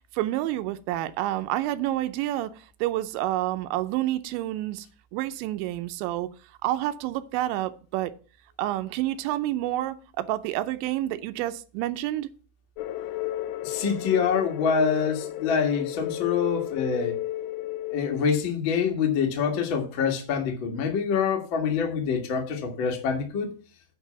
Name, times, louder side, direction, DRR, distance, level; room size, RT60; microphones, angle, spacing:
voice 1, 0.1-4.9 5.1-6.3 6.6-8.1 8.6-12.3, right 14 dB, 85° right, 2.9 m, -29 dB
sound 1, 12.8-18.2, left 14 dB, 85° left, 2.7 m, -33 dB
voice 2, 13.6-17.2 17.9-23.6, left 6 dB, 60° left, 1.3 m, -26 dB
8.3 x 4.7 x 6.8 m
omnidirectional pair, 5.1 m